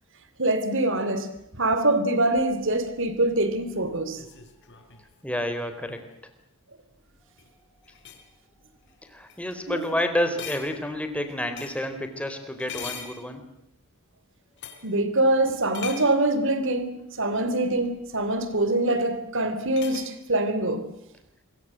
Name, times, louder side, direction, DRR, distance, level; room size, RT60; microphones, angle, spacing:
voice 1, 0.4-1.3 1.5-4.2 9.7-9.8 14.8-20.9, right 2 dB, 60° right, 3.4 m, -24 dB
sound 1, 2.3-6.1 7.2-7.5 7.8-8.3 8.9-9.0 9.3-9.4 9.8-10.0 10.4-11.9 12.6-13.7 14.6-14.9 15.7-16.2 17.8-17.9 19.8-20.1, left 7 dB, 55° left, 4.8 m, -42 dB
voice 2, 4.9-6.0 9.0-13.4, left 1 dB, 5° left, 4.0 m, -29 dB
26.5 x 23.5 x 7.6 m
head